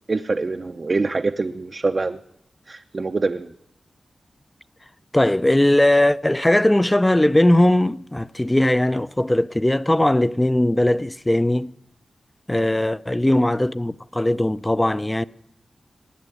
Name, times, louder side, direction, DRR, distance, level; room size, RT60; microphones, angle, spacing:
voice 1, 0.1-2.2 2.7-3.5 13.3-13.5, right 3 dB, 50° right, 0.6 m, -25 dB
voice 2, 5.1-11.7 12.5-15.2, left 1 dB, 15° left, 0.5 m, -19 dB
18.5 x 6.8 x 9.9 m
cardioid pair, 40°, 0 cm